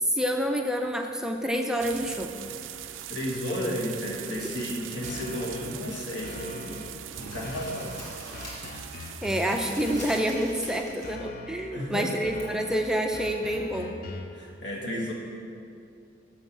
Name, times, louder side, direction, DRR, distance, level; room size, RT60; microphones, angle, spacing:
voice 1, 0.0-2.3 4.4-4.7 9.2-14.0, equal, 5° right, 3 dB, 0.4 m, -28 dB
sound 1, 1.8-10.2, right 11 dB, 90° right, 0.4 m, -41 dB
voice 2, 3.1-8.0 11.7-12.1 14.3-15.1, equal, 70° left, -2 dB, 1.7 m, -33 dB
sound 2, 5.0-5.8 6.2-7.0 7.4-10.6 11.0-11.8 12.2-14.4, left 2 dB, 50° left, 0.5 m, -42 dB
sound 3, 5.3-6.4 6.7-8.8 9.1-11.2 11.5-11.6 12.4-12.5, left 1 dB, 15° left, 2.6 m, -45 dB
7.7 x 6.5 x 7.3 m, 2.5 s
head